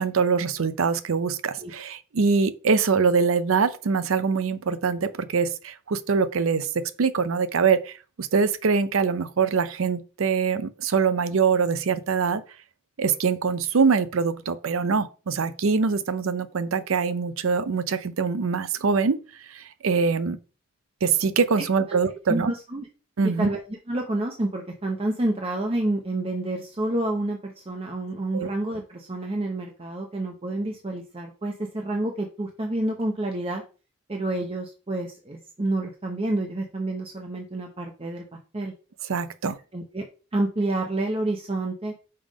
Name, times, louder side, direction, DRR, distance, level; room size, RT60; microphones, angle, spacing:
voice 1, 0.0-12.4 13.0-19.2 19.5-20.4 21.0-22.5 23.2-23.5 28.3-28.5 39.1-39.6, right 5 dB, 75° right, 0.6 m, -24 dB
voice 2, 22.3-22.9 23.2-33.6 34.1-38.7 39.7-40.1 40.3-41.9, right 1 dB, 25° right, 0.7 m, -29 dB
5.4 x 3.5 x 5.1 m
head